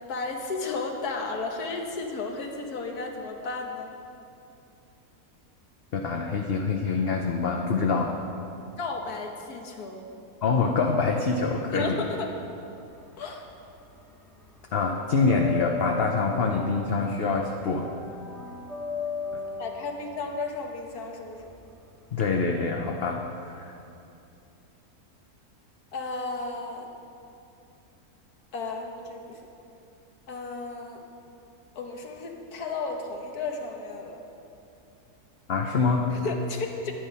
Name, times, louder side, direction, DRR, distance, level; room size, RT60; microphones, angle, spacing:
voice 1, 0.1-3.9 8.8-10.1 11.7-12.3 13.2-13.5 19.6-21.5 25.9-26.9 28.5-29.4 30.3-31.0 31.8-34.2 36.1-36.9, left 3 dB, 75° left, 2 dB, 1.7 m, -33 dB
voice 2, 5.9-8.2 10.4-12.0 14.7-17.9 19.3-19.4 22.1-23.7 35.5-36.1, left 4 dB, 50° left, 2 dB, 0.7 m, -25 dB
sound 1, 12.9-14.1 14.3-22.2, left 5 dB, ahead, 1.6 m, -37 dB
12.5 x 9.2 x 5.5 m, 2.7 s
omnidirectional pair, 1.7 m